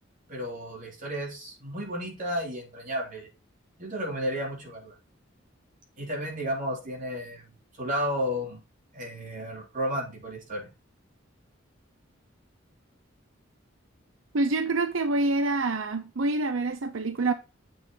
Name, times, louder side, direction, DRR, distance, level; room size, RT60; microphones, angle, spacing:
voice 1, 0.3-3.3 3.8-5.0 6.0-7.4 7.8-8.6 8.9-10.7, equal, 40° right, 3.8 m, -32 dB
voice 2, 14.3-17.3, right 2 dB, 85° right, 0.7 m, -26 dB
7.8 x 4.7 x 5.5 m
head